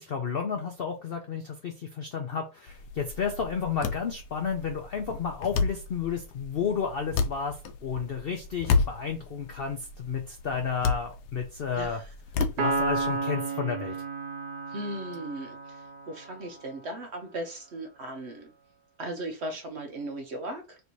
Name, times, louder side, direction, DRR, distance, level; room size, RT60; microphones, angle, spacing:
voice 1, 0.0-12.0 12.6-14.0, left 6 dB, 65° left, 4 dB, 0.5 m, -32 dB
sound 1, 2.7-13.2, left 4 dB, 90° left, 1.1 m, -32 dB
Piano, 12.6-16.2, right 3 dB, 75° right, 1.3 m, -32 dB
voice 2, 14.7-15.6 16.1-18.5 19.0-20.8, right 1 dB, 55° right, 4 dB, 0.9 m, -36 dB
3.3 x 2.7 x 4.5 m, 0.30 s
omnidirectional pair, 1.7 m